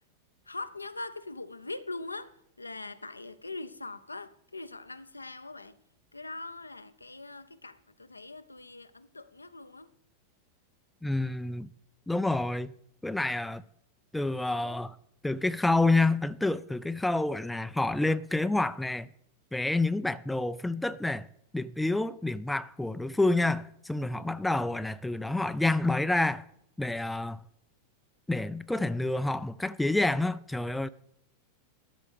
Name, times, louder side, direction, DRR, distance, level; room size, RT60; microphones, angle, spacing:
voice 1, 0.5-5.8 6.1-9.9 24.2-24.3, left 2 dB, 80° left, 0.5 m, -42 dB
voice 2, 11.0-11.7 12.1-12.7 13.0-13.6 14.1-15.0 15.2-19.1 19.5-21.3 21.5-26.5 26.8-27.4 28.3-30.9, left 2 dB, 5° left, 0.3 m, -28 dB
13.0 x 6.1 x 4.8 m
figure-of-eight pair, 90°, 0 cm